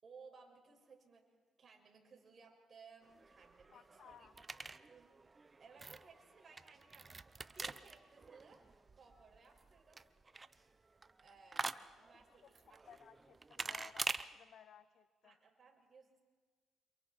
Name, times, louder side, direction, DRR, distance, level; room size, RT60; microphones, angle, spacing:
voice 1, 0.0-1.3 1.6-4.3 4.8-5.1 5.6-8.7 8.9-10.0 11.2-12.9 15.2-16.2, right 5 dB, 45° right, 1 dB, 6.1 m, -61 dB
sound 1, 3.0-14.2, right 3 dB, 25° right, 0.8 m, -47 dB
voice 2, 3.7-4.3 12.1-15.4, left 9 dB, 65° left, 12 dB, 1.1 m, -60 dB
29.0 x 27.0 x 4.5 m, 1.5 s
cardioid pair, 90°, 0 cm